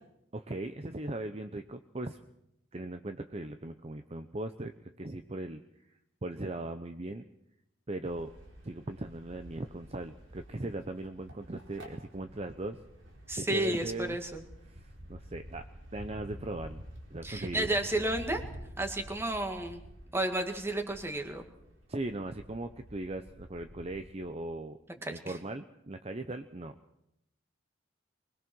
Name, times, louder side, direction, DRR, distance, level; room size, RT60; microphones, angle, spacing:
voice 1, 0.3-2.2 2.7-4.7 5.0-5.6 6.2-7.2 7.9-8.3 8.6-12.8 13.4-14.2 14.7-15.7 15.9-17.7 21.9-26.7, right 2 dB, 30° right, 8 dB, 0.8 m, -39 dB
sound 1, 8.0-24.3, equal, 75° right, 4.6 m, -49 dB
voice 2, 13.3-14.4 17.2-18.4 18.8-19.8 20.1-21.4 25.0-25.1, right 1 dB, 15° right, 4 dB, 2.0 m, -32 dB
24.5 x 20.5 x 6.3 m, 0.81 s
head